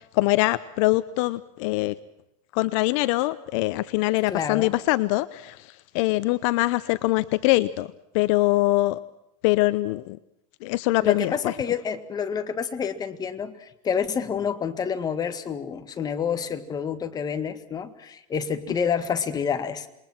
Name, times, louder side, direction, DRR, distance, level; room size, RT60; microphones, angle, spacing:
voice 1, 0.0-1.9 2.5-7.9 8.1-9.0 9.4-10.2 10.6-11.5, left 19 dB, 60° left, 15 dB, 0.8 m, -23 dB
voice 2, 4.3-4.7 11.0-19.9, left 7 dB, 20° left, 8 dB, 1.8 m, -28 dB
27.5 x 22.0 x 6.1 m, 0.83 s
supercardioid pair, 145°, 18 cm